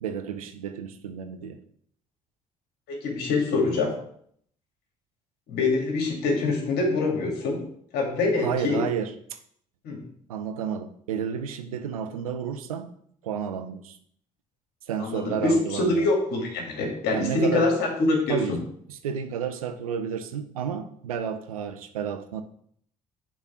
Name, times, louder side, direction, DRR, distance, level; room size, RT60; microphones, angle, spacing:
voice 1, 0.0-1.6 8.4-9.4 10.3-12.9 13.2-14.0 14.9-16.1 17.1-17.7 18.3-18.6 18.9-22.4, right 8 dB, 85° right, 9 dB, 0.6 m, -31 dB
voice 2, 2.9-4.0 5.5-7.6 7.9-8.8 9.8-10.0 15.0-18.6, left 3 dB, 65° left, 0 dB, 2.3 m, -25 dB
6.1 x 4.1 x 6.0 m, 0.64 s
hypercardioid pair, 50°, 18 cm